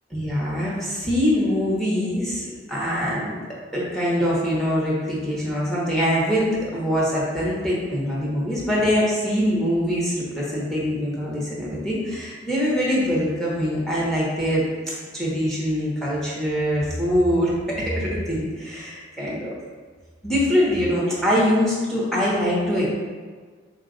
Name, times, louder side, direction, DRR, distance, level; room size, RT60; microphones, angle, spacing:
voice 1, 0.1-3.4 3.7-19.5 20.2-22.8, equal, ahead, -6 dB, 0.8 m, -23 dB
3.9 x 2.3 x 3.7 m, 1.5 s
head